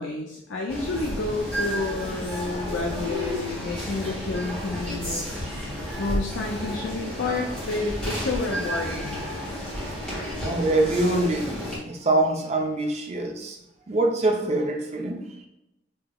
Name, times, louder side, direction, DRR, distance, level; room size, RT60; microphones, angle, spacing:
voice 1, 0.0-5.3 6.0-9.3, left 3 dB, 75° left, 0.5 m, -30 dB
sound 1, 0.7-11.8, equal, 5° left, 1.4 m, -32 dB
voice 2, 10.4-13.6 13.9-15.5, right 2 dB, 35° right, 0.5 m, -25 dB
4.9 x 2.8 x 2.3 m
head